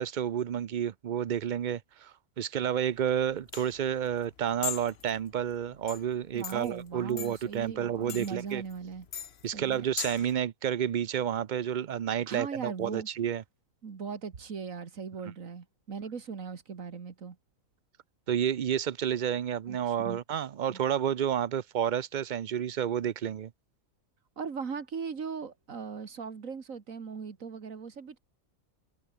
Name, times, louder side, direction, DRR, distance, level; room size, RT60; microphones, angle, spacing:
voice 1, 0.0-8.6 9.4-13.4 18.3-23.5, right 9 dB, 50° right, 0.6 m, -30 dB
sound 1, 2.9-10.3, left 7 dB, 55° left, 1.2 m, -41 dB
voice 2, 6.3-9.1 9.5-9.8 12.3-13.1 13.8-17.4 19.7-20.2 20.7-20.8 24.4-28.2, right 5 dB, 80° right, 2.1 m, -39 dB
omnidirectional pair, 1.4 m